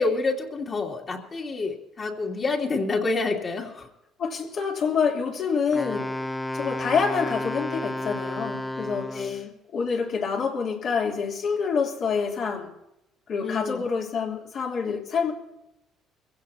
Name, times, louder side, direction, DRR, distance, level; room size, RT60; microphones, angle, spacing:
voice 1, 0.0-3.9 9.1-9.5 13.4-13.9, left 3 dB, 40° left, 0 dB, 2.8 m, -28 dB
voice 2, 4.2-6.1 6.5-9.4 9.7-12.7 13.3-15.3, left 6 dB, 60° left, -1 dB, 3.1 m, -27 dB
Wind instrument woodwind instrument, 5.7-9.4, left 1 dB, 10° left, 0.9 m, -32 dB
22.5 x 16.0 x 2.8 m, 0.85 s
cardioid pair, 90°, 0 cm